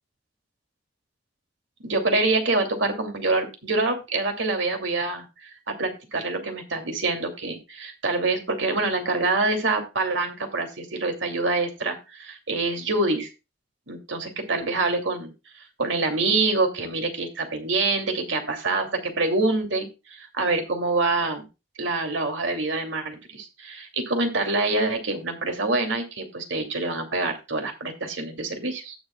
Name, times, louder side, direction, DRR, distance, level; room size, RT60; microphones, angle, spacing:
voice 1, 1.8-13.3 13.9-15.3 15.8-21.5 21.8-29.0, right 3 dB, 85° right, 5 dB, 2.6 m, -26 dB
17.5 x 6.5 x 2.3 m, 0.27 s
head